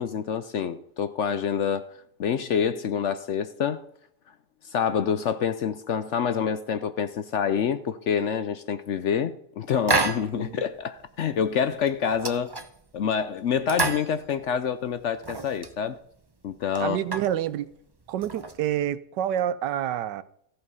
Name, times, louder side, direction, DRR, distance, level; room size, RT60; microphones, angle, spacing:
voice 1, 0.0-1.8 2.2-3.8 4.6-12.5 12.9-16.0 16.4-17.0, left 7 dB, 70° left, 0.7 m, -27 dB
sound 1, 9.9-10.5 10.8-10.9 11.3-11.6 11.9-13.0 13.5-14.7 15.0-15.8 16.2-16.3 16.6-17.4 18.1-18.9, right 3 dB, 35° right, 0.3 m, -29 dB
voice 2, 16.8-17.7 18.1-20.2, right 11 dB, 85° right, 1.3 m, -28 dB
14.5 x 7.8 x 5.5 m
omnidirectional pair, 1.8 m